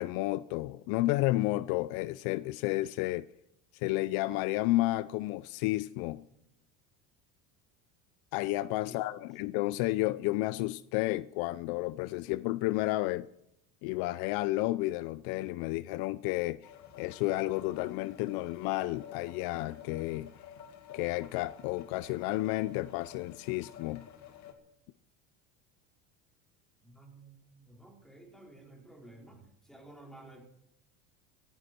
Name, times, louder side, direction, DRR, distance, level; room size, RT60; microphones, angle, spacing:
voice 1, 0.0-3.3 3.7-6.2 8.3-13.3 13.8-16.7 17.0-20.3 20.9-24.1, left 18 dB, 65° left, 0.6 m, -31 dB
sound 1, 16.6-24.5, left 9 dB, 45° left, 2.2 m, -51 dB
voice 2, 26.8-30.4, right 2 dB, ahead, 4.1 m, -53 dB
16.5 x 15.0 x 4.4 m
supercardioid pair, 120°, 39 cm